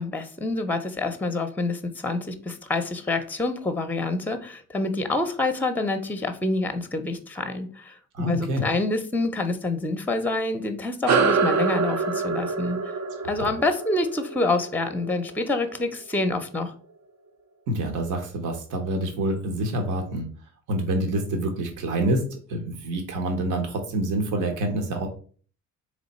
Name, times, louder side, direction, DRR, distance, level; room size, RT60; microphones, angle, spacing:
voice 1, 0.0-12.8 13.3-16.7, left 2 dB, 5° left, 8 dB, 0.6 m, -27 dB
voice 2, 8.1-8.6 13.4-13.5 17.7-20.3 20.7-25.1, right 1 dB, 85° right, 4 dB, 0.9 m, -27 dB
sound 1, 11.1-15.9, right 4 dB, 65° right, 0.6 m, -26 dB
3.6 x 3.1 x 4.1 m, 0.43 s
cardioid pair, 90°, 30 cm